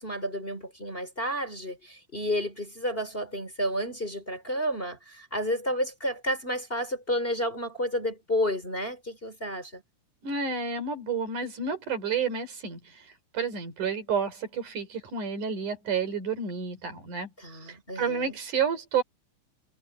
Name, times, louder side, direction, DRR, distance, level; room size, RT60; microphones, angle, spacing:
voice 1, 0.0-9.8 17.4-18.4, equal, 20° left, 3.7 m, -31 dB
voice 2, 10.2-12.9 13.3-17.3 17.6-19.0, right 6 dB, 85° right, 5.8 m, -30 dB
omnidirectional pair, 3.5 m